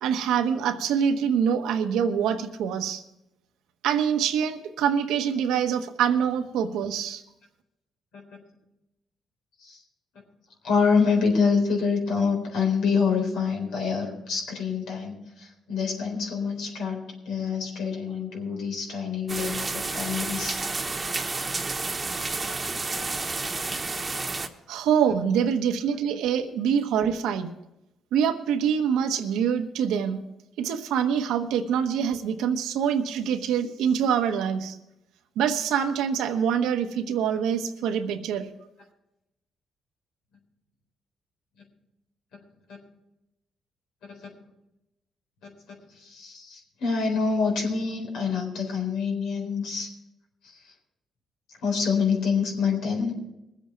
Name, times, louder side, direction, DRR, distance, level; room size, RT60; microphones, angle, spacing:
voice 1, 0.0-3.0 3.8-7.2 24.7-27.5 28.1-30.2 30.6-34.8 35.4-38.5, right 8 dB, 90° right, 7 dB, 1.1 m, -25 dB
voice 2, 10.6-20.6 23.4-23.5 44.0-44.3 45.4-45.5 46.0-49.9 50.4-50.6 51.6-53.2, left 5 dB, 85° left, 1 dB, 4.1 m, -26 dB
sound 1, 19.3-24.5, right 3 dB, 25° right, 1.1 m, -30 dB
21.5 x 8.1 x 4.5 m, 0.90 s
cardioid pair, 90°, 0 cm